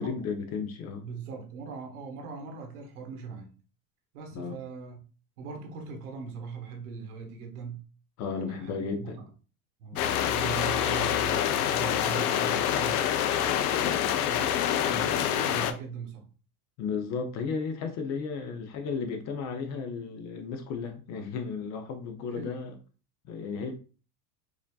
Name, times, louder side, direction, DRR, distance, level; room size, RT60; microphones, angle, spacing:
voice 1, 0.0-1.0 4.3-4.6 8.2-9.2 9.9-10.1 13.8-14.0 16.8-22.7 23.2-23.7, left 5 dB, 40° left, 0.6 m, -34 dB
voice 2, 1.0-3.6 4.1-5.0 5.4-7.9 8.3-9.3 9.8-13.0 13.4-16.3 18.4-18.6 22.2-22.6, right 5 dB, 85° right, 1.2 m, -40 dB
sound 1, 10.0-15.7, left 10 dB, 80° left, 0.6 m, -26 dB
4.8 x 2.7 x 2.3 m
supercardioid pair, 125°, 44 cm